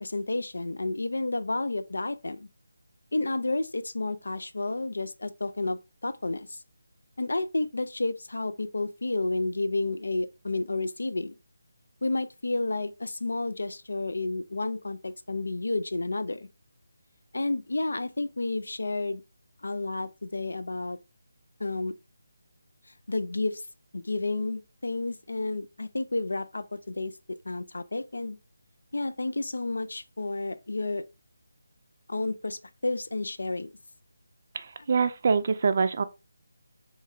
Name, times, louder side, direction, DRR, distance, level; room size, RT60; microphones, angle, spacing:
voice 1, 0.0-2.5 3.1-6.6 7.2-11.3 12.0-16.5 17.3-19.2 19.6-21.0 21.6-21.9 23.1-23.7 23.9-27.1 27.5-28.4 28.9-31.0 32.1-33.7, left 2 dB, 75° left, 0.4 m, -31 dB
voice 2, 34.5-36.0, right 5 dB, 45° right, 0.4 m, -25 dB
3.1 x 2.1 x 3.6 m
figure-of-eight pair, 160°, 0 cm